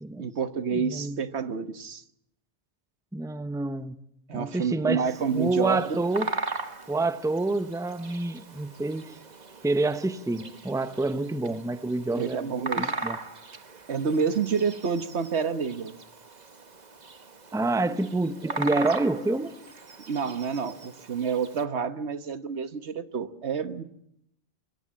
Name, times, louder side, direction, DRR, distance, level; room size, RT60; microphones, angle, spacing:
voice 1, 0.2-2.0 4.3-6.0 12.1-12.9 13.9-15.9 20.1-23.8, right 6 dB, 75° right, 1.4 m, -29 dB
voice 2, 0.7-1.2 3.1-4.0 4.3-5.1 5.3-6.3 6.9-9.2 9.6-13.2 17.5-19.5, right 2 dB, 5° right, 0.8 m, -28 dB
Bird vocalization bird call bird song, 5.1-21.6, right 3 dB, 40° right, 1.4 m, -39 dB
25.0 x 23.0 x 7.5 m
omnidirectional pair, 1.1 m